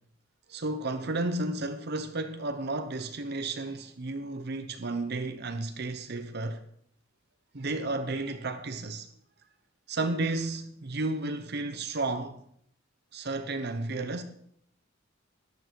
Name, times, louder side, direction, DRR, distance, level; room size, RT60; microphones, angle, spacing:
voice 1, 0.5-6.6 7.5-9.1 9.9-12.4 13.1-14.2, right 2 dB, 55° right, 0.9 m, -32 dB
14.0 x 10.5 x 4.7 m
head